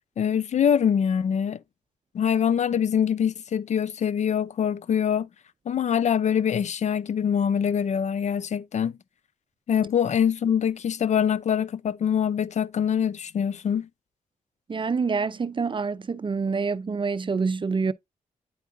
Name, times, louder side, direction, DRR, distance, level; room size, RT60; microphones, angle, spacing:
voice 1, 0.2-1.6 2.1-5.3 5.7-9.0 9.7-13.9, left 8 dB, 50° left, 0.4 m, -24 dB
voice 2, 14.7-17.9, right 5 dB, 35° right, 0.5 m, -26 dB
9.4 x 4.5 x 2.5 m
supercardioid pair, 50°, 15 cm